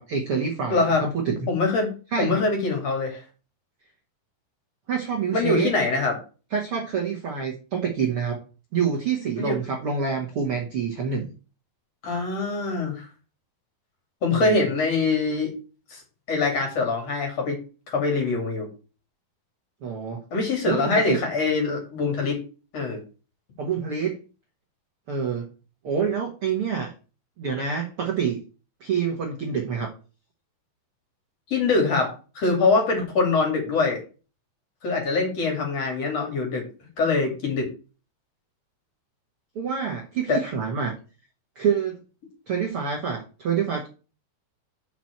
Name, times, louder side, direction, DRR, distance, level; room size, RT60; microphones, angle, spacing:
voice 1, 0.0-1.4 2.1-2.4 4.9-5.7 6.5-8.4 8.7-11.3 14.3-14.7 19.8-20.2 20.6-21.2 23.6-24.2 25.1-25.5 25.8-26.9 27.4-28.4 28.8-29.9 39.5-40.9 41.5-41.9 42.5-43.9, right 6 dB, 80° right, -1 dB, 1.2 m, -27 dB
voice 2, 0.7-1.0 1.5-1.9 2.2-3.2 5.3-6.2 9.4-9.6 12.0-13.1 14.2-15.5 15.9-16.0 16.3-17.6 17.9-18.7 20.3-22.4 22.7-23.0 31.5-34.0 34.8-36.6 37.0-37.7 40.3-40.4, left 3 dB, 40° left, 2 dB, 3.1 m, -23 dB
6.1 x 6.0 x 7.3 m, 0.35 s
omnidirectional pair, 4.9 m